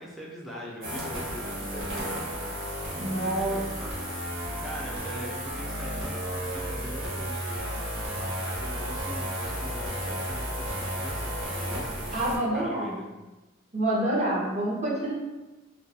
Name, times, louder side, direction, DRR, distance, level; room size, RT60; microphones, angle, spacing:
voice 1, 0.0-2.0 2.5-4.2 4.6-12.2 12.5-13.1, equal, ahead, -4 dB, 0.3 m, -42 dB
sound 1, 0.8-12.4, equal, 80° right, 0.8 m, -33 dB
voice 2, 3.0-3.6 12.1-13.0 13.7-15.1, right 1 dB, 35° right, -6 dB, 0.6 m, -27 dB
2.2 x 2.2 x 2.6 m, 1.1 s
head